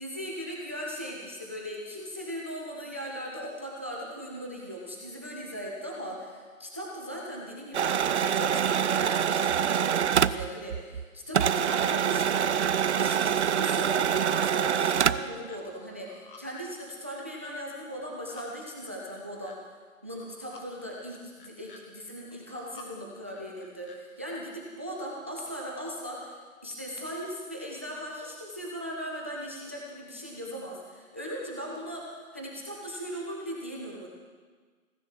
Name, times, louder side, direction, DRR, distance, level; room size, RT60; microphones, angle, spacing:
voice 1, 0.0-19.6 20.0-34.1, equal, 10° right, -2 dB, 0.5 m, -38 dB
sound 1, 7.7-11.1 11.3-15.3, right 8 dB, 55° right, 0.5 m, -25 dB
sound 2, 13.4-13.6 13.9-14.4 14.8-15.6 15.9-16.4 16.8-17.5 17.9-18.5 18.8-19.6 20.0-20.6 21.1-21.8 22.3-22.9 23.3-24.0, left 4 dB, 40° left, 1.8 m, -52 dB
16.0 x 10.0 x 7.4 m, 1.5 s
hypercardioid pair, 160°, 42 cm